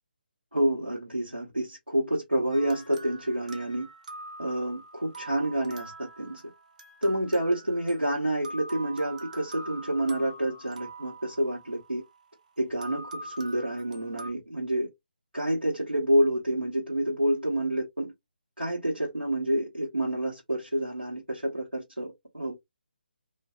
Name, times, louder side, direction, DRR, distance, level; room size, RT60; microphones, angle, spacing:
voice 1, 0.5-3.9 4.4-6.4 7.0-12.0 12.6-14.9 15.3-18.1 18.6-22.5, right 1 dB, 90° right, 0.9 m, -28 dB
sound 1, 2.5-12.2 12.8-14.3, right 2 dB, 45° right, 0.6 m, -44 dB
2.6 x 2.2 x 2.2 m
figure-of-eight pair, 145°, 6 cm